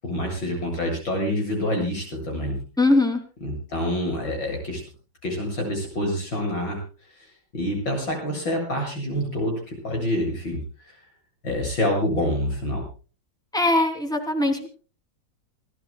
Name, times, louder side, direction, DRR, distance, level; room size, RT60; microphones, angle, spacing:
voice 1, 0.0-2.7 3.4-4.8 5.2-6.8 7.2-7.3 7.5-11.0 11.4-12.9, left 1 dB, 75° left, 1 dB, 8.8 m, -27 dB
voice 2, 2.8-3.2 13.5-14.7, left 2 dB, ahead, 4 dB, 2.9 m, -21 dB
29.0 x 15.0 x 2.3 m, 0.37 s
omnidirectional pair, 2.1 m